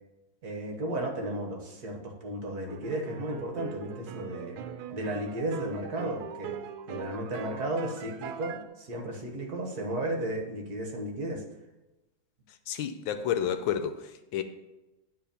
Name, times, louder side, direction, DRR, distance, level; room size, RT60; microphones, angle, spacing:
voice 1, 0.4-4.6 4.9-6.5 6.9-11.4, right 1 dB, 55° right, 1 dB, 1.5 m, -34 dB
sound 1, 2.7-8.6, right 8 dB, 80° right, 1.4 m, -41 dB
voice 2, 12.7-14.4, left 9 dB, 75° left, 9 dB, 1.3 m, -30 dB
9.8 x 3.5 x 6.9 m, 1.0 s
omnidirectional pair, 2.2 m